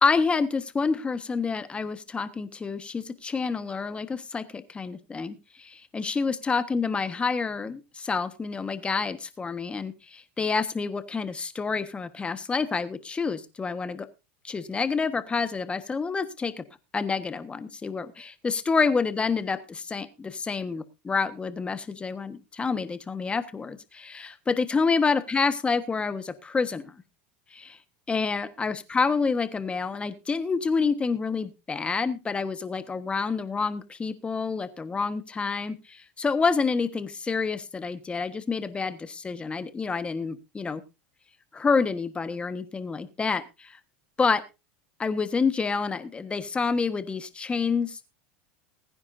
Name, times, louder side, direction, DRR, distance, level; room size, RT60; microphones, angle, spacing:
voice 1, 0.0-14.1 14.4-16.6 16.9-26.9 27.5-27.8 28.1-40.8 41.5-43.8 44.2-44.4 45.0-48.1, left 4 dB, 20° left, 12 dB, 1.3 m, -28 dB
20.5 x 9.7 x 2.6 m, 0.26 s
hypercardioid pair, 100°, 6 cm